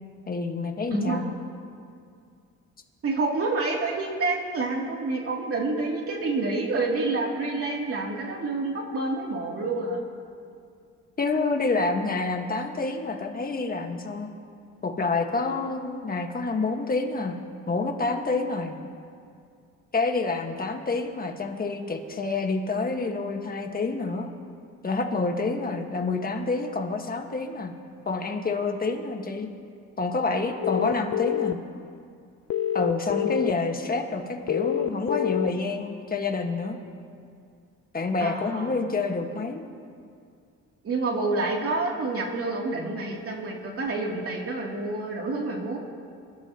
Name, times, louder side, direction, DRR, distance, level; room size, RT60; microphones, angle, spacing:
voice 1, 0.3-1.2 11.2-14.3 14.8-17.4 17.7-18.8 19.9-24.3 24.8-27.7 28.0-29.5 30.0-31.6 32.7-36.8 37.9-39.6, left 3 dB, 30° left, 4 dB, 1.6 m, -28 dB
voice 2, 3.0-10.0 38.2-38.7 40.8-45.8, right 3 dB, 50° right, -2 dB, 3.0 m, -28 dB
sound 1, 30.6-31.5 32.5-33.5 34.5-35.5, left 11 dB, 55° left, 0.5 m, -26 dB
26.5 x 12.5 x 3.0 m, 2.3 s
cardioid pair, 90°, 30 cm